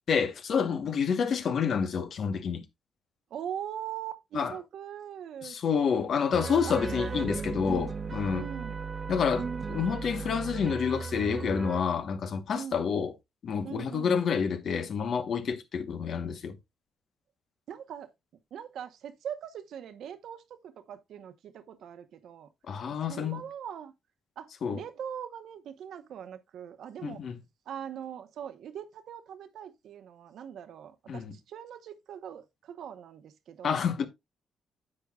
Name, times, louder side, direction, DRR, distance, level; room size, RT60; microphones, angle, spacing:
voice 1, 0.1-2.6 4.3-4.5 5.4-8.4 9.1-13.1 13.4-16.6 22.7-23.5 24.6-24.8 27.0-27.4 31.1-31.3 33.6-34.1, left 6 dB, 60° left, 1.0 m, -28 dB
voice 2, 3.3-5.6 6.7-6.8 8.3-8.8 12.5-12.8 13.6-14.1 17.7-18.1 18.5-22.5 23.0-23.9 24.4-27.2 27.7-33.8, right 9 dB, 75° right, 0.9 m, -41 dB
sound 1, 6.3-11.8, right 5 dB, 35° right, 0.5 m, -36 dB
9.7 x 7.6 x 2.3 m
cardioid pair, 110°, 0 cm